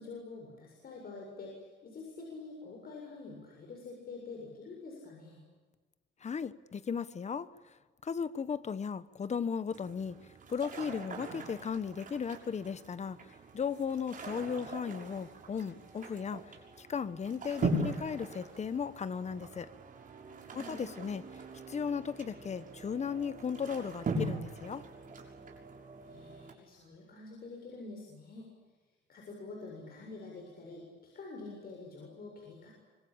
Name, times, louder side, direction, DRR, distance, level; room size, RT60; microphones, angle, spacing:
voice 1, 0.0-5.4 20.5-20.8 26.0-28.5 29.1-32.7, left 3 dB, 55° left, 0 dB, 7.3 m, -47 dB
voice 2, 6.2-7.7 8.0-10.2 10.5-13.3 13.5-19.7 20.5-21.2 21.7-24.8, left 6 dB, 35° left, 14 dB, 1.2 m, -36 dB
sound 1, 9.7-26.5, right 2 dB, 45° right, 6.7 m, -41 dB
26.0 x 25.0 x 8.8 m, 1.3 s
cardioid pair, 130°, 19 cm